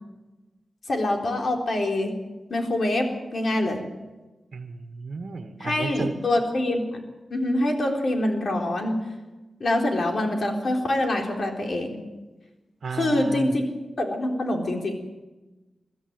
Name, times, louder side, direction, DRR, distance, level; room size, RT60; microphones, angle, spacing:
voice 1, 0.9-2.1 2.5-3.8 5.6-7.0 7.3-9.0 9.6-12.0 12.9-13.6 14.0-14.9, left 1 dB, 60° left, 2 dB, 4.0 m, -25 dB
voice 2, 4.5-6.1 12.8-13.7, right 4 dB, 75° right, 6 dB, 1.5 m, -33 dB
22.5 x 13.5 x 9.1 m, 1.1 s
wide cardioid pair, 105°, 0 cm